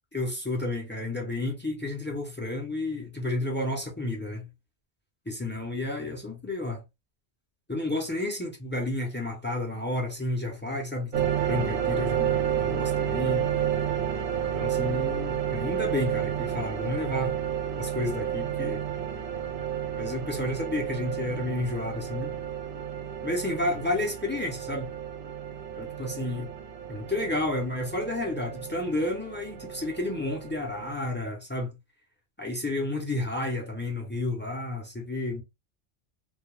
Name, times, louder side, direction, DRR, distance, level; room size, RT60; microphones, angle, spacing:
voice 1, 0.1-4.5 5.3-6.8 7.7-13.5 14.5-17.4 17.8-18.8 19.9-22.4 23.2-24.9 25.8-26.5 26.9-31.7 32.4-35.4, left 2 dB, 15° left, 0.3 m, -31 dB
sound 1, 11.1-30.9, right 9 dB, 60° right, 0.7 m, -31 dB
2.2 x 2.1 x 3.1 m
omnidirectional pair, 1.2 m